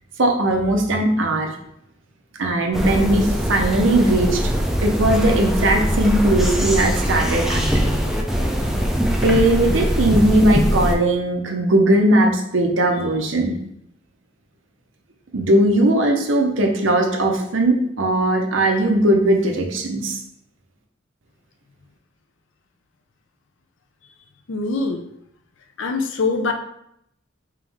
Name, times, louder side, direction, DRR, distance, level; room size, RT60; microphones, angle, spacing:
voice 1, 0.2-1.5 2.4-4.4 4.8-7.7 9.2-13.6 15.3-20.2, right 1 dB, 75° right, 3 dB, 0.7 m, -18 dB
sound 1, 2.7-11.0, equal, ahead, 0.4 m, -21 dB
voice 2, 24.5-25.0 25.8-26.5, left 3 dB, 70° left, 4 dB, 0.5 m, -23 dB
3.4 x 3.0 x 3.5 m, 0.75 s
head